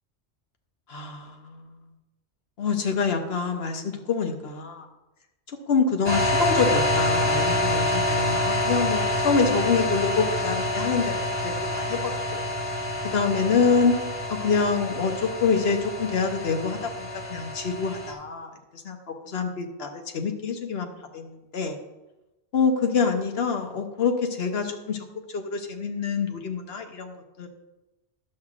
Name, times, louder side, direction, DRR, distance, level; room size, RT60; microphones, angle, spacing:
voice 1, 0.9-1.6 2.6-3.8 4.1-4.8 5.7-12.0 12.3-12.4 13.0-14.0 14.3-19.0 19.3-21.8 22.5-25.0 25.3-27.5, left 5 dB, 65° left, 4 dB, 1.1 m, -26 dB
sound 1, 6.0-18.1, left 1 dB, 25° left, 1.2 m, -27 dB
11.5 x 7.6 x 2.4 m, 1.0 s
omnidirectional pair, 1.1 m